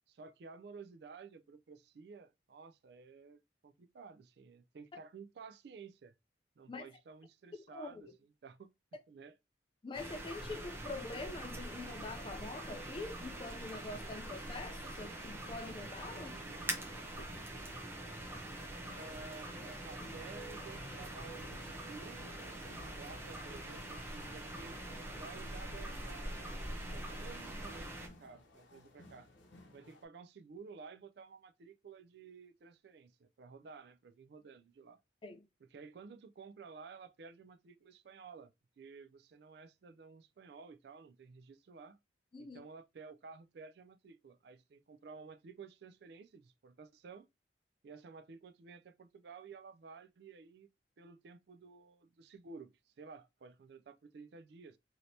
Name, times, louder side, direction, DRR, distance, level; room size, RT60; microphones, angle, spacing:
voice 1, 0.1-6.1 6.6-8.7 9.1-9.4 16.1-17.2 18.9-19.6 19.8-24.8 25.2-29.3 29.7-35.0 35.6-42.0 42.4-47.3 47.8-50.7 51.0-54.8, right 5 dB, 60° right, 0.3 m, -53 dB
voice 2, 7.5-8.0 8.9-9.0 9.8-16.3 35.2-35.5 42.3-42.6, left 3 dB, 30° left, 0.4 m, -45 dB
sound 1, 9.9-28.1, right 1 dB, 15° right, 0.6 m, -44 dB
sound 2, 15.4-30.0, left 2 dB, 85° left, 0.7 m, -59 dB
sound 3, 16.6-28.9 29.2-29.3 29.6-29.7, left 1 dB, 55° left, 1.0 m, -58 dB
3.2 x 2.8 x 2.6 m
head